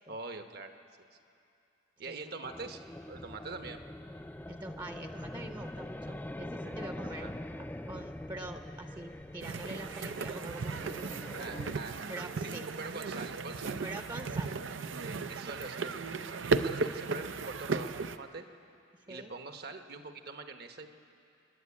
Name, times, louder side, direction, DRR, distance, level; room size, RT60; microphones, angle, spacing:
voice 1, 0.1-0.7 2.0-2.8 3.1-3.8 6.6-7.3 11.3-12.5 12.8-13.8 15.0-15.9 16.3-18.4 19.1-20.9, right 3 dB, 55° right, 7 dB, 1.1 m, -44 dB
voice 2, 2.1-2.4 4.5-7.3 7.9-11.0 12.1-12.7 13.8-14.5 19.1-19.4, right 2 dB, 25° right, 5 dB, 0.8 m, -44 dB
sound 1, 2.4-11.8, left 1 dB, 10° left, 0.4 m, -43 dB
sound 2, 9.4-18.2, right 4 dB, 85° right, 0.6 m, -35 dB
28.5 x 11.0 x 8.5 m, 2.6 s
head